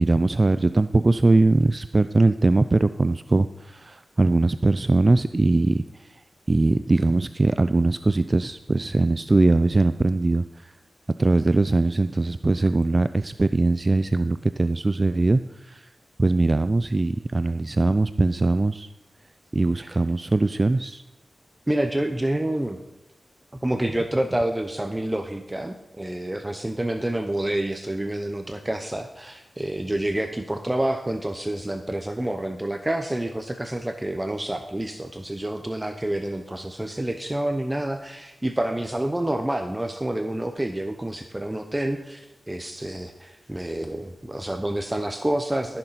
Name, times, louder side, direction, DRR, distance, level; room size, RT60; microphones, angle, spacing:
voice 1, 0.0-5.8 6.5-10.7 11.2-15.9 16.2-18.9 19.5-21.0, right 2 dB, 35° right, 12 dB, 0.4 m, -21 dB
voice 2, 21.7-22.8 23.6-45.8, right 1 dB, 15° right, 7 dB, 0.9 m, -28 dB
14.5 x 6.8 x 5.8 m, 0.96 s
cardioid pair, 60°, 0 cm